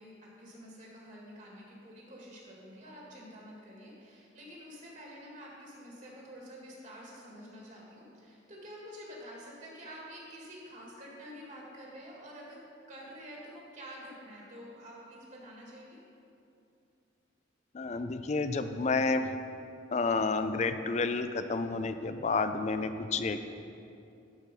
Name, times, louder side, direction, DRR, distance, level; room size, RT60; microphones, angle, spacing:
voice 1, 0.0-12.6 12.9-16.0, equal, 40° right, -4 dB, 1.8 m, -48 dB
voice 2, 17.7-19.3 19.9-23.4, left 4 dB, 35° left, 9 dB, 0.4 m, -30 dB
12.0 x 4.6 x 5.2 m, 2.6 s
head